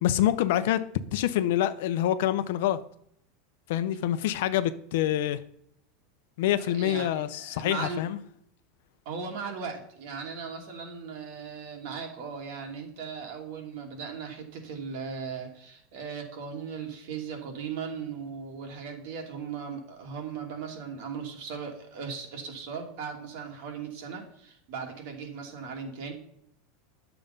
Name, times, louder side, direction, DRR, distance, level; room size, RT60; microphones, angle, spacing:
voice 1, 0.0-0.8 1.1-2.8 3.7-5.4 6.4-8.2, left 12 dB, 60° left, 0.7 m, -26 dB
voice 2, 6.6-8.0 9.0-26.1, right 6 dB, 55° right, 2.7 m, -38 dB
11.0 x 7.0 x 5.3 m
supercardioid pair, 175°, 0 cm